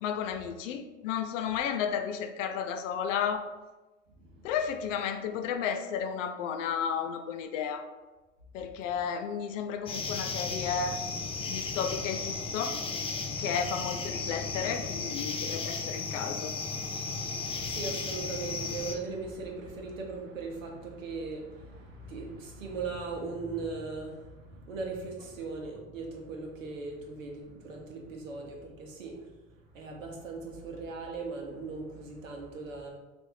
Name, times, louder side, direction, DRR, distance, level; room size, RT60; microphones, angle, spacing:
voice 1, 0.0-3.4 4.4-7.8 8.5-11.0 11.5-12.8 13.4-16.5, left 7 dB, 75° left, 7 dB, 0.6 m, -33 dB
voice 2, 4.1-4.5 8.8-8.9 17.1-32.9, right 3 dB, 90° right, 1 dB, 0.9 m, -39 dB
sound 1, 9.9-18.9, left 4 dB, 15° left, 0.3 m, -35 dB
3.3 x 2.6 x 4.3 m, 1.2 s
hypercardioid pair, 85°, 38 cm